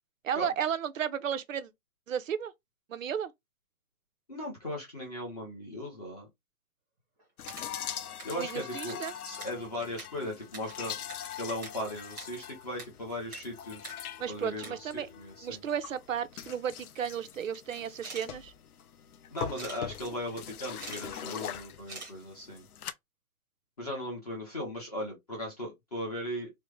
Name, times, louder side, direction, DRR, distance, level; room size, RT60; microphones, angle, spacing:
voice 1, 0.2-1.7 2.1-2.5 2.9-3.3 8.4-9.1 14.2-15.1 15.4-18.5, right 8 dB, 60° right, 0.5 m, -33 dB
voice 2, 4.3-6.3 8.2-9.0 9.2-10.9 11.4-14.0 14.3-15.6 19.3-22.6 23.8-26.5, left 1 dB, 25° left, 0.7 m, -38 dB
sound 1, 7.2-8.5 8.8-11.8 12.1-12.9 13.1-13.4 13.7-14.0 14.4-14.7 15.7-15.8 16.2-16.8 17.9-18.3 19.5-19.8 20.6-21.0 21.3-21.4 21.9-22.1, right 3 dB, 15° right, 0.7 m, -45 dB
sound 2, 7.4-22.9, left 10 dB, 75° left, 0.5 m, -43 dB
3.2 x 2.0 x 3.0 m
hypercardioid pair, 170°, 45 cm